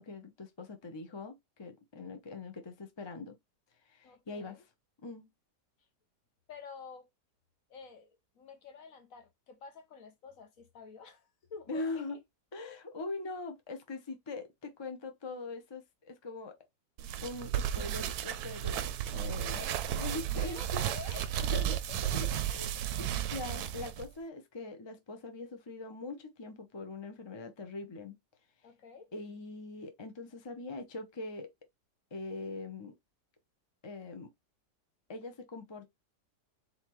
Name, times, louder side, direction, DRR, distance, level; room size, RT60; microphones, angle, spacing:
voice 1, 0.0-3.4 3.9-4.6 5.0-5.3 11.7-12.2 12.5-16.6 17.2-20.6 21.5-21.8 22.0-28.1 29.1-31.5 32.1-32.9 33.8-34.3 35.1-35.9, left 3 dB, 25° left, 0.5 m, -42 dB
voice 2, 4.0-4.6 6.5-7.1 7.7-12.2 19.5-19.8 20.2-21.8 28.6-29.1, left 5 dB, 60° left, 1.2 m, -49 dB
sound 1, 17.0-24.1, right 10 dB, 75° right, 1.0 m, -34 dB
4.1 x 4.0 x 3.0 m
omnidirectional pair, 1.8 m